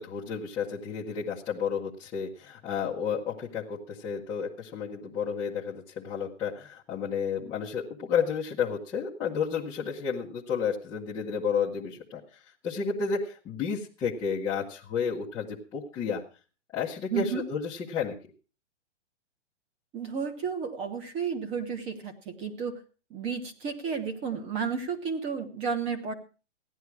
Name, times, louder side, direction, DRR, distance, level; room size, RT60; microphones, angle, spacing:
voice 1, 0.0-12.2 12.6-16.2 16.7-18.2, left 6 dB, 10° left, -8 dB, 0.8 m, -31 dB
voice 2, 17.1-17.4 19.9-22.8 23.1-26.1, right 6 dB, 15° right, 7 dB, 1.1 m, -32 dB
16.0 x 11.0 x 4.7 m, 0.36 s
hypercardioid pair, 165°, 36 cm